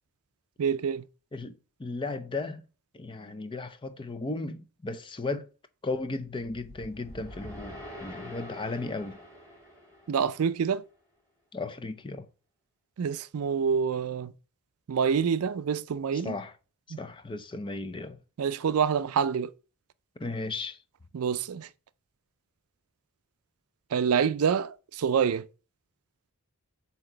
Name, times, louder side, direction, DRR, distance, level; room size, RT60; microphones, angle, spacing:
voice 1, 0.6-1.0 10.1-10.8 13.0-14.3 14.9-16.3 16.9-17.0 18.4-19.5 21.1-21.7 23.9-25.5, right 7 dB, 75° right, 0.4 m, -27 dB
voice 2, 1.3-2.6 2.9-5.5 5.8-9.2 11.5-12.3 16.1-16.5 17.0-18.2 20.2-20.8, left 3 dB, 20° left, 0.5 m, -35 dB
sound 1, 6.4-10.7, left 1 dB, 15° right, 3.5 m, -45 dB
7.8 x 2.9 x 4.4 m
head